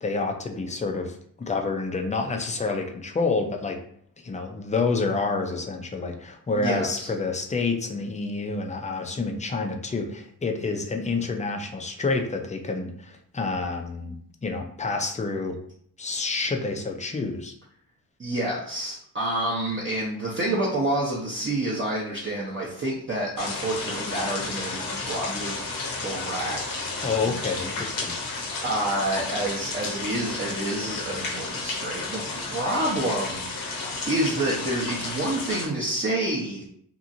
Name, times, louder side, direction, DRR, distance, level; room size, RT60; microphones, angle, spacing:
voice 1, 0.0-3.8 4.2-14.2 14.4-15.6 16.0-17.5 27.0-28.1, left 3 dB, 20° left, 3 dB, 0.4 m, -28 dB
voice 2, 6.5-7.1 18.2-25.6 26.0-26.6 26.9-27.1 28.6-36.7, right 1 dB, 30° right, -6 dB, 0.7 m, -28 dB
sound 1, 23.4-35.7, left 3 dB, 55° left, 0.8 m, -32 dB
2.8 x 2.5 x 2.5 m, 0.65 s
cardioid pair, 85°, 40 cm